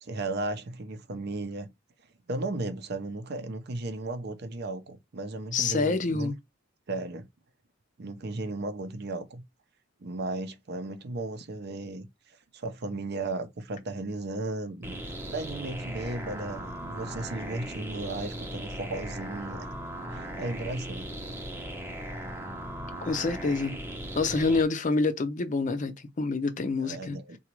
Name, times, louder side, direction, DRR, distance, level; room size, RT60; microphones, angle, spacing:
voice 1, 0.0-1.7 2.3-6.3 6.9-7.3 8.0-9.4 10.0-12.1 12.5-14.9 15.3-19.7 20.1-21.1 26.8-27.4, right 2 dB, 55° right, 0.6 m, -35 dB
voice 2, 5.5-6.4 23.0-23.8 24.2-27.2, left 3 dB, 40° left, 0.5 m, -27 dB
sound 1, 14.8-24.6, right 1 dB, 10° right, 0.7 m, -38 dB
3.9 x 2.3 x 2.9 m
head